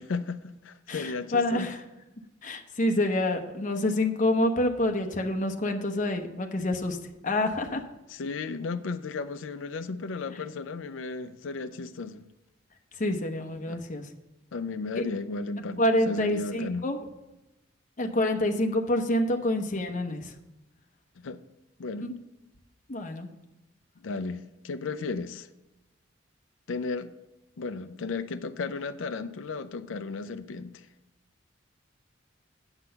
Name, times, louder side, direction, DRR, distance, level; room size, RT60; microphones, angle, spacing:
voice 1, 0.0-1.7 8.1-12.2 13.7-13.8 14.5-16.9 21.2-21.4 21.8-22.1 24.0-25.5 26.7-27.1 27.6-30.9, left 4 dB, 80° left, 10 dB, 0.5 m, -34 dB
voice 2, 0.9-1.8 2.4-7.0 7.2-7.8 13.0-14.0 15.0-15.1 15.8-17.0 18.0-20.2 22.0-22.1 22.9-23.3, left 1 dB, 40° left, 4 dB, 0.9 m, -27 dB
8.9 x 6.1 x 5.6 m, 0.98 s
head